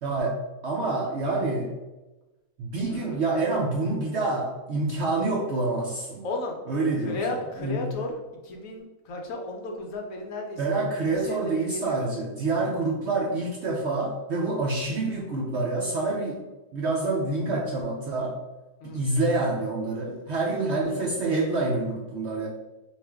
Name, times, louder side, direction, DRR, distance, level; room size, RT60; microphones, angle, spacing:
voice 1, 0.0-1.8 2.6-6.3 6.7-7.8 10.6-16.4 16.7-18.4 18.8-22.5, right 2 dB, 65° right, -2 dB, 0.7 m, -27 dB
voice 2, 2.9-3.2 6.2-6.6 7.0-10.8 11.1-12.1 18.8-19.0, left 2 dB, 65° left, 2 dB, 0.9 m, -34 dB
4.4 x 2.5 x 3.4 m, 1.1 s
omnidirectional pair, 1.6 m